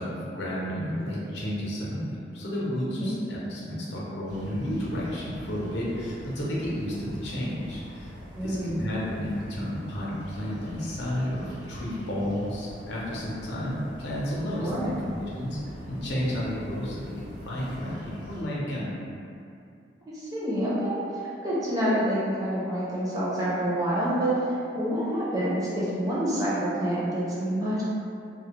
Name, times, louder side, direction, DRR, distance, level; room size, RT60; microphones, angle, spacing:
voice 1, 0.0-8.1 8.4-15.6 15.9-18.9, equal, 75° left, -6 dB, 0.6 m, -32 dB
sound 1, 4.3-18.4, equal, 80° right, 0.5 m, -44 dB
voice 2, 8.3-8.8 14.6-14.9 20.1-21.0 21.4-24.4 24.7-27.8, equal, 20° right, -9 dB, 0.5 m, -27 dB
2.2 x 2.0 x 2.9 m, 2.5 s
head